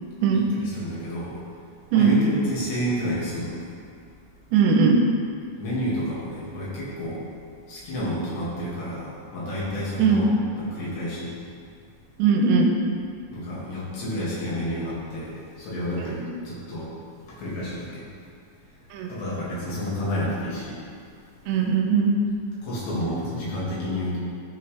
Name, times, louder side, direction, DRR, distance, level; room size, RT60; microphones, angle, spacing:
voice 1, 0.3-1.3 1.9-3.6 5.6-7.2 7.7-11.3 13.3-16.9 17.2-18.1 19.1-20.8 22.6-24.2, equal, 70° left, -8 dB, 4.1 m, -30 dB
voice 2, 4.5-5.0 10.0-10.3 12.2-12.7 16.0-16.2 18.9-19.1 21.4-22.1, right 5 dB, 85° right, 1 dB, 2.9 m, -19 dB
12.5 x 5.6 x 3.3 m, 2.3 s
omnidirectional pair, 5.1 m